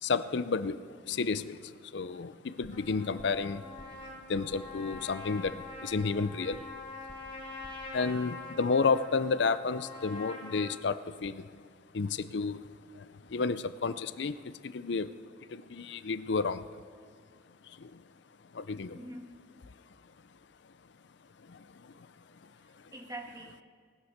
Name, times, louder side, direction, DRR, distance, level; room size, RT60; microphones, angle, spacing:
voice 1, 0.0-3.7 4.3-6.7 7.9-11.6 11.9-12.7 12.9-15.2 15.5-16.6 17.6-18.0 18.5-19.0 21.4-22.1 22.8-22.9, left 4 dB, 70° left, 13 dB, 0.5 m, -32 dB
sound 1, 2.6-2.9 3.2-3.5 3.8-4.0 4.3-4.6 4.9-5.2 5.4-6.2 6.5-6.8 7.1-7.4 7.6-7.9, right 1 dB, 55° right, 1.3 m, -53 dB
Trumpet, 2.7-10.8, left 3 dB, 30° left, 3.5 m, -45 dB
voice 2, 18.9-19.4 22.6-23.6, right 1 dB, 20° right, 2 dB, 1.4 m, -45 dB
19.0 x 9.8 x 6.6 m, 2.1 s
head